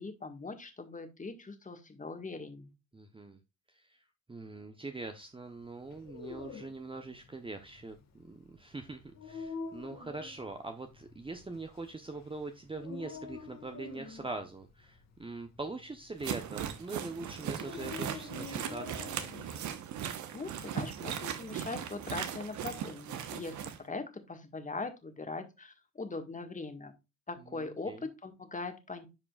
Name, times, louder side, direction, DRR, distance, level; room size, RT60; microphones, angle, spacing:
voice 1, 0.0-2.7 20.3-26.9 27.3-29.1, left 3 dB, 25° left, 6 dB, 1.7 m, -41 dB
voice 2, 2.9-3.4 3.7-4.0 4.3-19.2 27.5-28.0, right 3 dB, 15° right, 6 dB, 1.0 m, -43 dB
Dog, 5.8-19.6, left 5 dB, 55° left, 1.8 m, -47 dB
sound 1, 16.2-23.8, right 9 dB, 65° right, 1.2 m, -38 dB
11.0 x 4.8 x 2.4 m, 0.25 s
hypercardioid pair, 55°, 32 cm